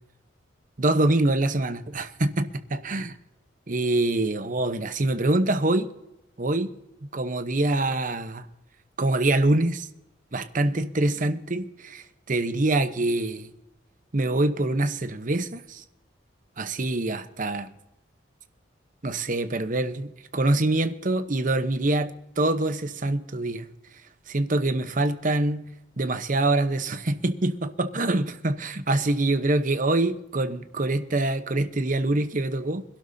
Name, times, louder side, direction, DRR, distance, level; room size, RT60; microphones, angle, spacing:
voice 1, 0.8-3.2 3.7-5.9 6.4-6.7 7.0-8.5 9.0-9.9 10.3-13.5 14.1-15.8 16.6-17.7 19.0-23.7 24.3-25.7 26.0-32.8, right 2 dB, 45° right, 0.9 m, -25 dB
25.5 x 11.5 x 2.8 m
head